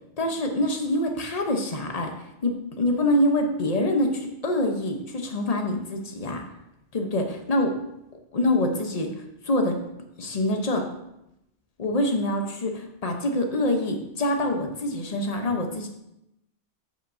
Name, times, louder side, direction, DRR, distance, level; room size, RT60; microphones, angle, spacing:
voice 1, 0.2-2.1 2.4-6.4 6.9-7.8 8.3-9.8 10.2-10.9 11.8-15.9, left 1 dB, 35° left, 4 dB, 0.9 m, -25 dB
10.0 x 6.1 x 2.7 m, 0.84 s
omnidirectional pair, 1.2 m